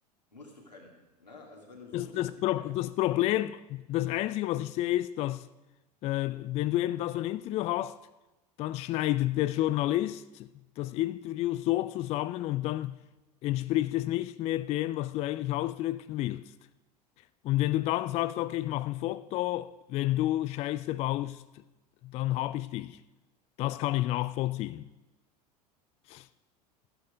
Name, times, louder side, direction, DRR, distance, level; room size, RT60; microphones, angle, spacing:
voice 1, 0.3-2.3 2.6-2.7, left 3 dB, 90° left, 2.7 m, -49 dB
voice 2, 1.9-5.5 6.0-8.0 8.6-10.5 10.8-13.0 13.4-16.4 17.4-21.6 22.0-23.0 23.6-24.9 26.1-26.3, left 15 dB, 30° left, 0.3 m, -30 dB
13.5 x 10.5 x 5.1 m
figure-of-eight pair, 80°, 21 cm